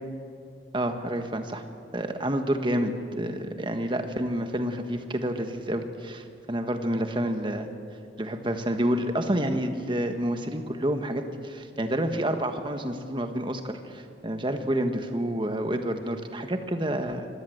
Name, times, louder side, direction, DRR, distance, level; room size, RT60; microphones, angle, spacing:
voice 1, 0.7-1.6 1.9-7.7 8.2-17.3, right 1 dB, 25° right, 6 dB, 1.5 m, -29 dB
24.5 x 18.0 x 8.0 m, 2.5 s
head